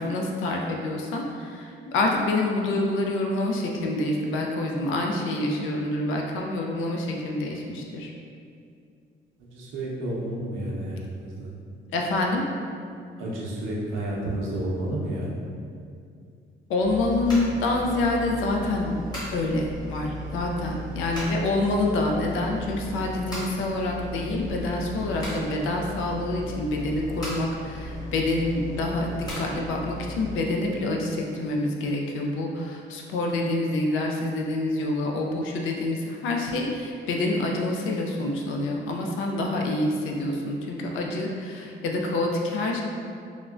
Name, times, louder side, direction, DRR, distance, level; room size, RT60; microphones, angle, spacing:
voice 1, 0.0-8.1 11.9-12.4 16.7-18.9 19.3-42.8, left 2 dB, 80° left, 0 dB, 0.4 m, -27 dB
voice 2, 9.5-11.5 13.2-15.4, right 1 dB, 90° right, -4 dB, 0.6 m, -31 dB
sound 1, 16.8-30.3, left 1 dB, 20° left, 1.1 m, -36 dB
3.6 x 2.1 x 2.3 m, 2.4 s
cardioid pair, 90°, 20 cm